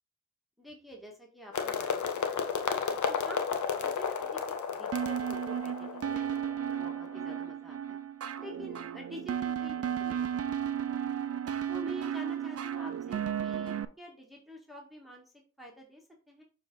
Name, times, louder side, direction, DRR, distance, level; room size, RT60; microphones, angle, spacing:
voice 1, 0.6-3.4 3.8-6.3 6.6-8.0 8.4-11.2 11.7-16.4, equal, ahead, -1 dB, 1.8 m, -48 dB
sound 1, 1.5-7.4, left 6 dB, 75° left, 1.0 m, -33 dB
sound 2, 4.9-13.8, right 9 dB, 50° right, 0.6 m, -34 dB
6.8 x 3.7 x 4.0 m, 0.37 s
supercardioid pair, 45°, 30 cm